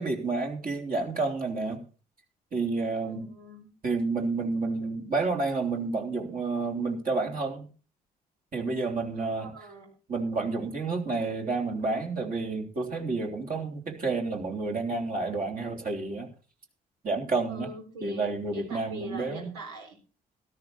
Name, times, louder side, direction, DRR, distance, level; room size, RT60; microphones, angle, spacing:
voice 1, 0.0-1.8 2.5-3.3 3.8-7.7 8.5-9.5 10.1-16.3 17.0-17.7 18.0-19.5, right 3 dB, 45° right, 2 dB, 3.5 m, -30 dB
voice 2, 3.0-3.7 9.1-9.9 17.4-20.0, right 1 dB, 75° right, 1 dB, 3.8 m, -43 dB
13.5 x 13.0 x 4.3 m, 0.35 s
figure-of-eight pair, 45°, 20 cm